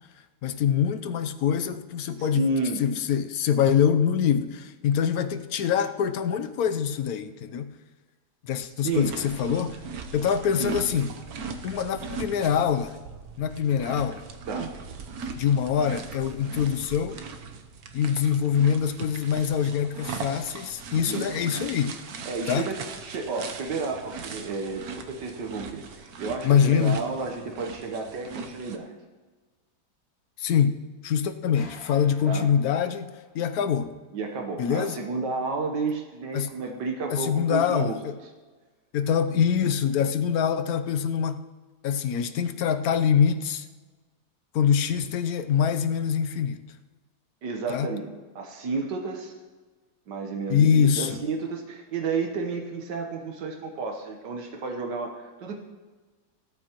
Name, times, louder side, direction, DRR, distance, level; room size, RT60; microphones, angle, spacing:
voice 1, 0.4-2.5 2.8-7.7 8.4-9.8 10.1-11.1 11.6-12.9 13.4-14.2 15.4-17.2 17.9-22.0 22.5-22.7 26.4-27.0 30.4-33.1 33.3-33.9 34.6-35.0 36.3-36.5 37.1-38.0 38.9-41.4 41.8-43.7 44.5-46.6 47.7-47.9 50.5-51.2, left 8 dB, 70° left, 10 dB, 1.0 m, -24 dB
voice 2, 2.2-2.8 8.8-9.1 10.6-10.8 14.5-14.7 21.0-21.3 22.2-28.9 32.2-32.5 34.1-38.0 47.4-48.1 48.3-49.3 50.1-55.5, right 4 dB, 85° right, 3 dB, 1.7 m, -31 dB
sound 1, 8.9-28.8, right 5 dB, 65° right, 1.3 m, -39 dB
sound 2, 31.5-33.5, left 2 dB, 40° left, 1.6 m, -50 dB
16.5 x 13.0 x 3.0 m, 1.3 s
omnidirectional pair, 1.8 m